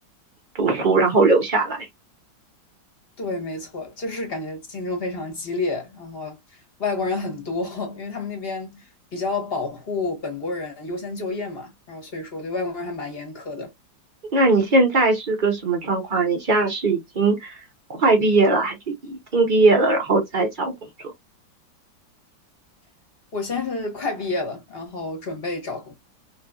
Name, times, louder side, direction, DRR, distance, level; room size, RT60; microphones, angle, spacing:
voice 1, 0.6-1.9 14.3-17.6 17.9-20.7, right 3 dB, 65° right, 0.5 m, -20 dB
voice 2, 3.2-13.7 23.3-25.9, left 3 dB, 40° left, 1.0 m, -30 dB
3.2 x 3.0 x 2.3 m
omnidirectional pair, 2.1 m